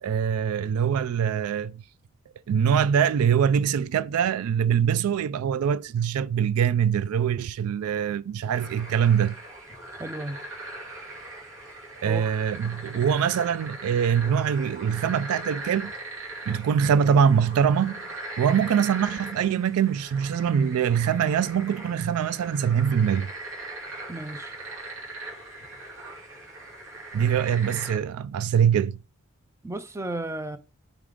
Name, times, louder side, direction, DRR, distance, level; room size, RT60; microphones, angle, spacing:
voice 1, 0.0-1.8 2.5-9.4 12.0-15.9 16.5-18.1 18.4-23.3 27.1-29.0, right 8 dB, 80° right, 0.3 m, -23 dB
sound 1, 8.5-28.0, right 2 dB, 65° right, 2.7 m, -40 dB
voice 2, 9.9-10.4 12.0-12.3 24.1-24.6 29.6-30.6, right 2 dB, 15° right, 0.5 m, -34 dB
5.9 x 4.9 x 3.7 m
head